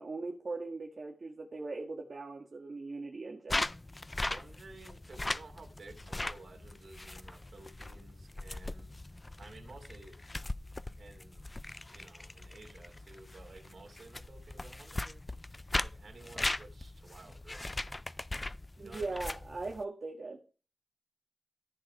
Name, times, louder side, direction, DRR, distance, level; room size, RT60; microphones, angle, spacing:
voice 1, 0.0-3.6 18.8-20.4, right 3 dB, 50° right, 1.6 m, -40 dB
sound 1, 3.5-19.8, left 2 dB, 25° left, 0.4 m, -39 dB
voice 2, 4.2-9.0 9.4-10.2 11.0-11.5 11.9-17.9 18.8-19.2, right 3 dB, 70° right, 2.8 m, -54 dB
14.0 x 5.1 x 4.6 m
wide cardioid pair, 125°, 0 cm